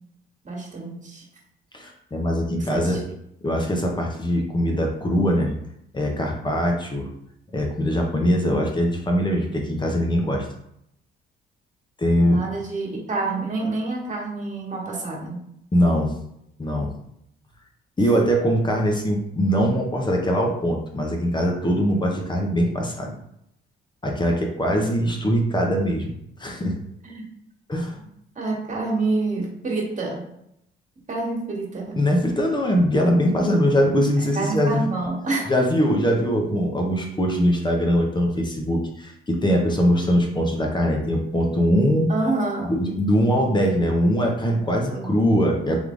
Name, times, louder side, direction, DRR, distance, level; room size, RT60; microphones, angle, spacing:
voice 1, 0.4-1.2 2.6-3.0 12.2-15.4 24.7-25.0 27.0-27.2 28.0-28.1 28.3-30.2 31.1-32.0 34.3-35.5 42.1-42.7 44.9-45.1, right 3 dB, 40° right, -2 dB, 1.7 m, -27 dB
voice 2, 1.7-3.0 3.4-5.5 5.9-7.1 7.5-10.5 12.0-12.4 15.7-16.2 16.6-16.9 18.0-23.1 24.0-26.8 27.7-28.0 31.9-34.8 35.5-42.1 42.7-45.9, equal, 20° left, 1 dB, 0.9 m, -22 dB
3.5 x 3.2 x 3.8 m, 0.76 s
cardioid pair, 90°, 20 cm